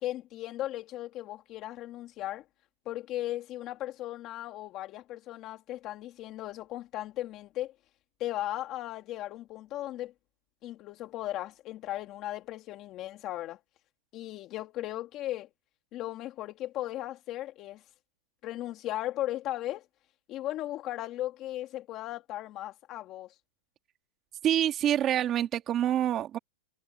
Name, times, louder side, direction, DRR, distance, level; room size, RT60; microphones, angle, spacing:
voice 1, 0.0-2.4 2.9-7.7 8.2-10.1 10.6-13.6 14.1-15.5 15.9-17.8 18.4-19.9 20.3-23.4, left 14 dB, 30° left, 2.2 m, -37 dB
voice 2, 24.4-26.4, right 11 dB, 25° right, 2.2 m, -26 dB
supercardioid pair, 155°, 0 cm